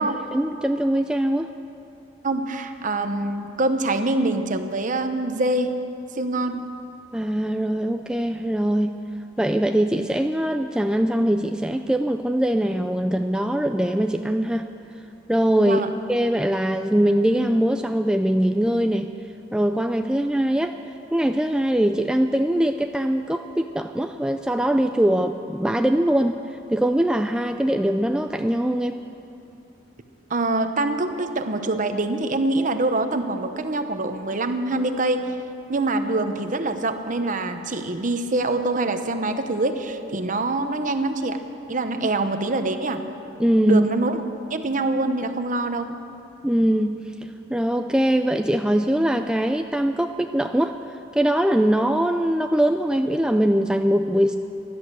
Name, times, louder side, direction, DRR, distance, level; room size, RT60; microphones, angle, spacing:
voice 1, 0.0-1.5 7.1-8.9 9.4-14.7 15.3-15.8 16.1-19.1 19.5-20.8 21.1-26.4 26.7-29.0 43.4-43.9 46.4-47.0 47.5-54.4, right 1 dB, 5° right, 6 dB, 0.3 m, -22 dB
voice 2, 2.2-5.8 6.1-6.6 15.6-15.9 30.3-35.3 35.7-41.4 41.7-43.0 43.7-44.2 44.5-45.9, right 2 dB, 45° right, 8 dB, 0.9 m, -24 dB
16.5 x 11.5 x 6.7 m, 2.7 s
head